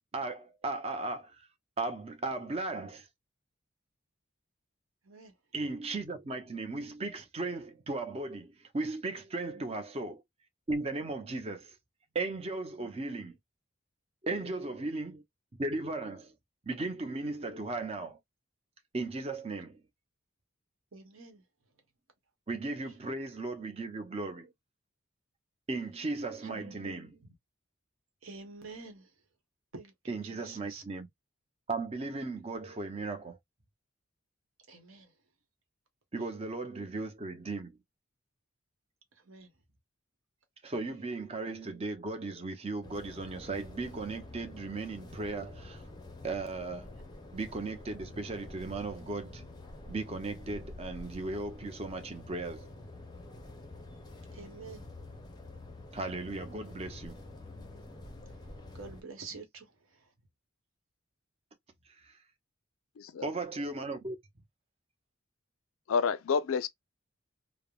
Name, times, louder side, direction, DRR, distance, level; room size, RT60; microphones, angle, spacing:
voice 1, 0.0-1.4 1.8-3.1 5.5-10.2 10.7-11.7 12.1-13.4 14.2-15.2 15.6-16.3 16.7-18.2 18.9-19.8 22.5-24.5 25.7-27.1 30.1-31.1 31.7-33.4 36.1-37.8 40.6-45.8 46.2-46.9 47.3-49.5 49.9-52.7 55.9-57.2 62.0-62.1 63.2-64.2, right 3 dB, 30° right, 0.5 m, -36 dB
voice 2, 14.3-14.7 20.9-21.4 26.4-27.1 28.2-29.1 29.7-30.8 34.7-35.1 39.3-39.5 54.3-54.9 58.7-60.1, right 4 dB, 80° right, 1.0 m, -48 dB
sound 1, 42.8-59.0, left 2 dB, 20° left, 0.5 m, -48 dB
voice 3, 63.0-63.3 65.9-66.7, left 5 dB, 85° left, 0.4 m, -29 dB
3.3 x 2.0 x 2.2 m
head